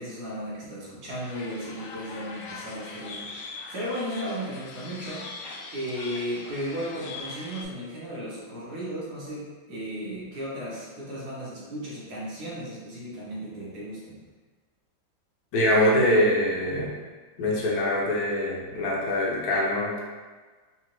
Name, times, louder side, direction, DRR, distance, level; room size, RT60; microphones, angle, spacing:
voice 1, 0.0-3.2 3.7-5.2 5.7-14.2, equal, 60° right, -7 dB, 1.6 m, -35 dB
sound 1, 1.2-7.6, left 3 dB, 85° left, 1.3 m, -41 dB
voice 2, 15.5-16.9 17.4-20.0, left 1 dB, 65° left, -3 dB, 1.1 m, -23 dB
4.1 x 2.6 x 3.0 m, 1.4 s
omnidirectional pair, 2.1 m